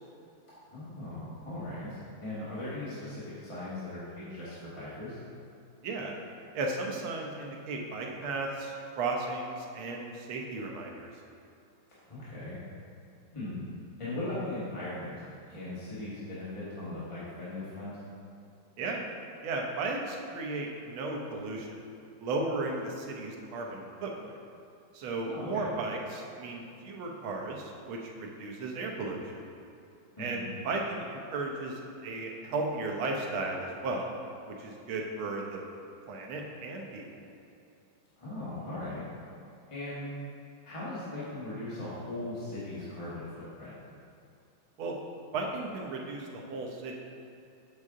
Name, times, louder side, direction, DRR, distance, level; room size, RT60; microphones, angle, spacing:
voice 1, 0.7-5.2 12.0-12.6 13.3-13.6 14.0-15.2 15.5-18.0 25.2-25.7 30.1-30.5 38.2-39.0 39.7-40.1 40.6-43.7, left 2 dB, 15° left, -11 dB, 1.4 m, -39 dB
voice 2, 5.8-6.2 6.5-11.1 18.8-19.0 19.4-21.8 22.2-24.4 24.9-29.4 30.2-34.1 34.5-35.6 36.1-37.0 44.8-45.0 45.3-47.0, right 3 dB, 90° right, 0 dB, 1.7 m, -35 dB
8.0 x 5.4 x 3.7 m, 2.6 s
omnidirectional pair, 2.2 m